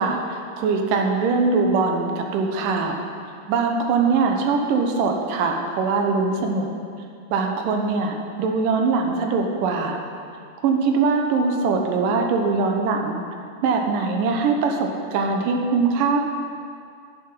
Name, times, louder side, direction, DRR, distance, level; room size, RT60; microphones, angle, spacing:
voice 1, 0.0-3.0 3.5-6.7 7.3-10.0 10.6-13.2 13.6-16.2, right 4 dB, 85° right, 3 dB, 2.6 m, -22 dB
11.0 x 9.5 x 5.5 m, 2.3 s
omnidirectional pair, 3.7 m